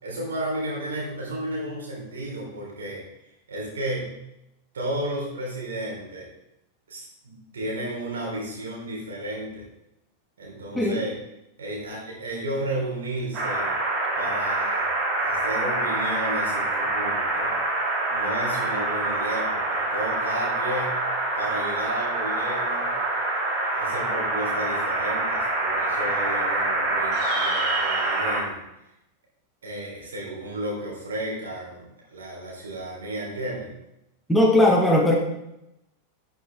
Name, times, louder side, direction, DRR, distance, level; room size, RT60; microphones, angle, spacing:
voice 1, 0.0-3.0 3.5-4.1 4.7-6.3 6.9-9.6 10.4-11.2 11.6-13.7 14.2-14.9 15.2-17.6 18.1-21.0 21.4-22.9 23.7-28.6 29.6-33.7, right 1 dB, 65° right, -3 dB, 3.8 m, -33 dB
sound 1, 13.3-28.4, right 2 dB, 35° right, 2.6 m, -26 dB
voice 2, 34.3-35.2, left 1 dB, 5° left, 0 dB, 1.4 m, -18 dB
12.0 x 6.5 x 3.6 m, 0.87 s
figure-of-eight pair, 90°, 0 cm